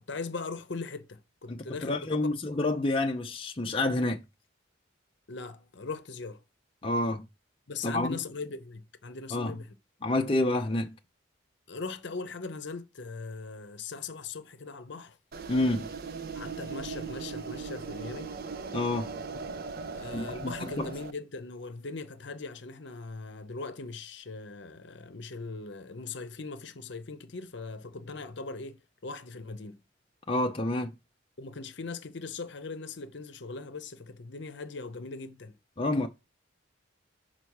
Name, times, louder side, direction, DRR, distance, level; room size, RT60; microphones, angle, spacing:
voice 1, 0.0-2.1 5.3-6.4 7.7-9.7 11.7-15.2 16.3-18.3 19.9-29.8 31.4-35.6, left 4 dB, 60° left, 0.8 m, -40 dB
voice 2, 1.5-4.2 6.8-7.2 7.8-8.2 9.3-9.5 10.0-10.9 15.5-15.9 18.7-19.1 20.1-20.9 30.3-30.9 35.8-36.1, left 2 dB, 25° left, 0.6 m, -28 dB
sound 1, 15.3-21.1, right 4 dB, 50° right, 0.5 m, -39 dB
5.9 x 4.3 x 4.7 m
head